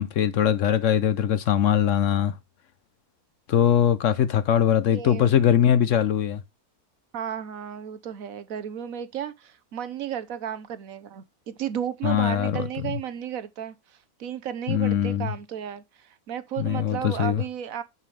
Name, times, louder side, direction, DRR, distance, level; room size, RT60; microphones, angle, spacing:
voice 1, 0.0-2.4 3.5-6.4 12.0-12.9 14.7-15.3 16.6-17.4, left 9 dB, 65° left, 0.9 m, -22 dB
voice 2, 4.9-5.3 7.1-17.8, right 9 dB, 65° right, 1.2 m, -34 dB
8.3 x 7.1 x 3.3 m
omnidirectional pair, 1.6 m